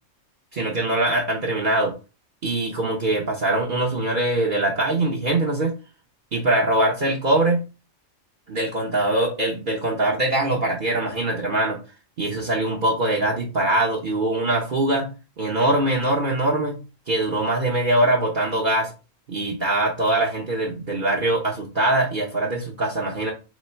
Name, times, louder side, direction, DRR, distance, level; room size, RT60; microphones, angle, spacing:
voice 1, 0.5-1.9 2.4-5.7 6.3-7.6 8.5-11.8 12.2-16.8 17.1-18.9 19.3-23.3, right 1 dB, 45° right, -3 dB, 0.9 m, -22 dB
3.1 x 3.1 x 4.3 m, 0.31 s
omnidirectional pair, 1.3 m